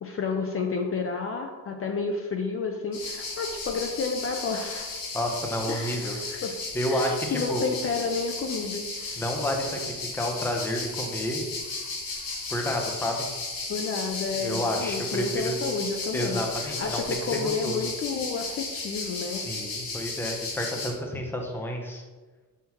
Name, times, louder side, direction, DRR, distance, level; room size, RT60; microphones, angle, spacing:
voice 1, 0.0-5.0 5.7-6.6 6.9-9.3 13.7-19.4, left 4 dB, 40° left, 3 dB, 0.5 m, -31 dB
sound 1, 2.9-20.9, left 3 dB, 80° left, 1.5 m, -35 dB
voice 2, 5.1-6.2 6.7-7.6 9.2-9.8 10.1-11.4 12.5-13.3 14.4-15.6 16.1-17.8 19.3-22.0, equal, 5° left, 1 dB, 0.7 m, -30 dB
6.0 x 5.7 x 2.9 m, 1.3 s
cardioid pair, 140°, 35 cm